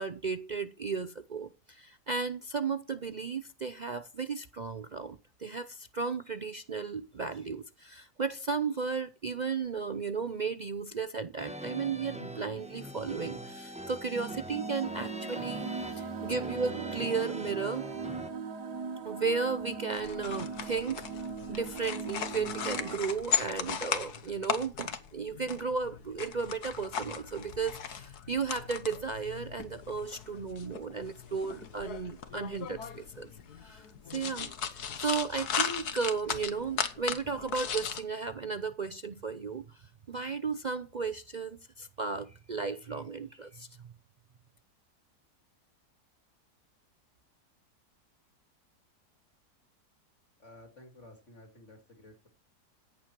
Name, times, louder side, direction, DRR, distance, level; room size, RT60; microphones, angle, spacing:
voice 1, 0.0-17.9 19.0-21.1 21.5-33.3 33.6-33.8 34.1-39.8 40.1-43.7, right 5 dB, 65° right, 0.4 m, -34 dB
sound 1, 11.4-18.3, right 1 dB, 5° right, 1.1 m, -42 dB
sound 2, 14.1-23.0, right 5 dB, 80° right, 1.7 m, -39 dB
sound 3, 19.9-38.0, left 7 dB, 70° left, 1.8 m, -37 dB
voice 2, 50.4-52.3, left 1 dB, 45° left, 3.0 m, -53 dB
14.0 x 9.7 x 4.6 m
omnidirectional pair, 1.7 m